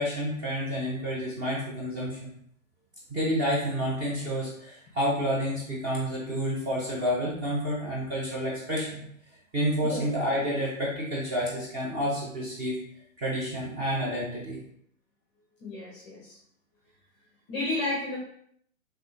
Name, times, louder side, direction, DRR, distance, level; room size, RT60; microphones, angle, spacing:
voice 1, 0.0-2.3 3.1-9.0 9.5-12.8 13.2-14.6, equal, 20° right, -6 dB, 0.7 m, -29 dB
voice 2, 15.6-16.4 17.5-18.2, left 2 dB, 20° left, -4 dB, 0.6 m, -32 dB
3.5 x 3.1 x 2.7 m, 0.68 s
figure-of-eight pair, 120°, 41 cm